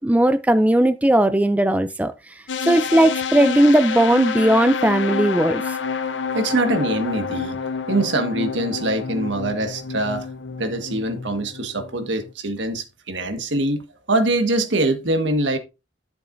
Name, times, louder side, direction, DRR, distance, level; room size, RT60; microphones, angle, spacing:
voice 1, 0.0-2.1 2.6-5.8, right 1 dB, 10° right, 0.4 m, -17 dB
sound 1, 2.5-12.3, left 6 dB, 80° left, 0.9 m, -28 dB
voice 2, 6.3-7.6 7.9-10.3 10.6-13.8 14.1-15.6, right 2 dB, 75° right, 1.6 m, -23 dB
12.0 x 6.9 x 2.6 m
head